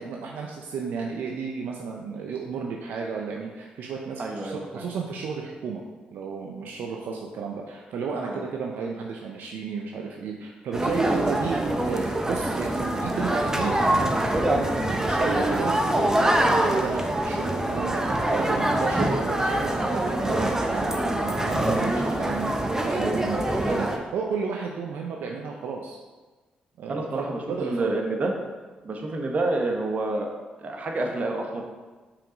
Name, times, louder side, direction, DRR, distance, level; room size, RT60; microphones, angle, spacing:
voice 1, 0.0-5.8 6.1-26.0 26.8-28.0, right 5 dB, 75° right, 0 dB, 0.7 m, -33 dB
voice 2, 4.2-4.8 8.2-8.4 11.0-11.4 23.7-23.8 26.9-28.3 28.8-30.3 30.6-31.6, right 2 dB, 50° right, 2 dB, 1.4 m, -28 dB
sound 1, 10.7-24.0, right 1 dB, 15° right, 1.0 m, -24 dB
5.8 x 5.0 x 5.2 m, 1.3 s
supercardioid pair, 55°, 3 cm